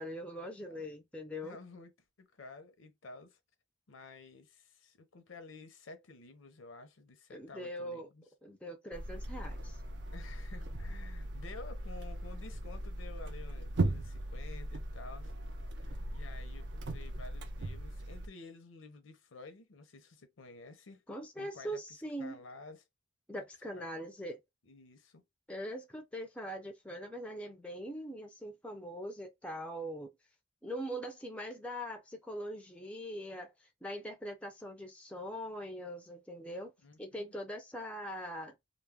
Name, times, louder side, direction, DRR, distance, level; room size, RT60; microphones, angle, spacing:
voice 1, 0.0-1.6 7.3-8.1 8.4-9.8 21.1-22.4 23.3-24.4 25.5-30.1 30.6-36.7 37.0-38.5, equal, 5° left, 0.4 m, -42 dB
voice 2, 1.4-1.9 2.2-3.4 3.9-8.2 10.1-15.3 15.7-21.0 21.4-21.8 22.2-22.8 23.7-24.1 24.6-25.2 36.8-37.3, left 3 dB, 85° left, 0.6 m, -52 dB
sound 1, 8.9-18.3, right 2 dB, 60° right, 0.4 m, -38 dB
2.2 x 2.0 x 3.3 m
head